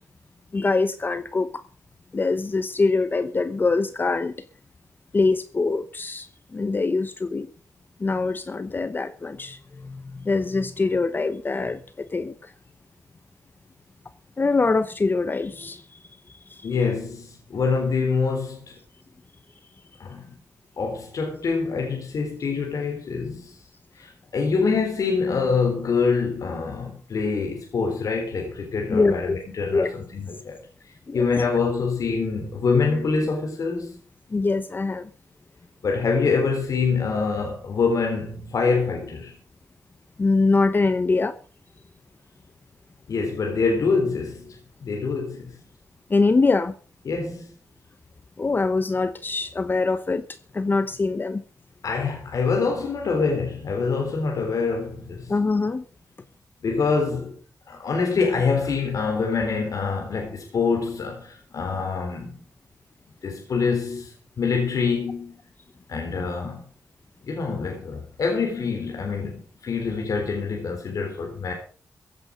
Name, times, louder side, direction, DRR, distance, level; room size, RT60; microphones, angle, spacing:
voice 1, 0.5-1.6 2.1-4.4 5.1-7.5 8.0-12.5 14.4-16.0 16.5-16.7 28.9-29.4 29.7-29.9 31.1-31.3 34.3-35.1 37.1-37.2 40.2-41.4 46.1-46.7 48.4-50.2 50.5-51.4 55.3-55.8, left 3 dB, 35° left, 0.9 m, -23 dB
voice 2, 16.6-18.7 20.0-20.4 20.8-23.6 23.9-30.6 30.8-34.0 35.8-39.4 43.1-45.6 47.1-47.5 51.8-55.3 56.6-57.4 57.7-62.3 63.2-65.3 65.9-66.6 67.2-71.5, left 4 dB, 70° left, 3.9 m, -25 dB
15.5 x 10.5 x 5.2 m
wide cardioid pair, 110°, 6 cm